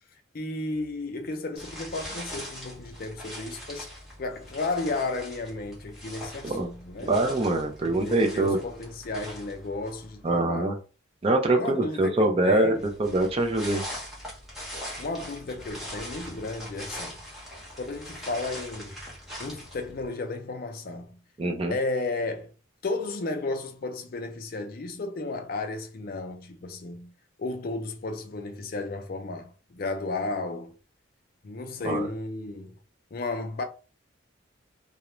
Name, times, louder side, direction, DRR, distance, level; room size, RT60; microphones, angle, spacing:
voice 1, 0.3-3.9 4.2-7.1 7.8-10.8 11.5-12.9 15.0-17.2 17.8-19.0 19.4-21.2 21.7-22.5 22.8-27.1 27.4-30.8 31.4-32.7 33.1-33.6, left 2 dB, 45° left, 0.4 m, -33 dB
sound 1, 1.6-10.2 12.8-20.1, equal, ahead, 0.9 m, -41 dB
voice 2, 7.1-8.6 10.2-10.7 11.2-13.8 21.4-21.7 31.8-32.0, right 2 dB, 30° right, 0.4 m, -24 dB
2.4 x 2.1 x 3.0 m
head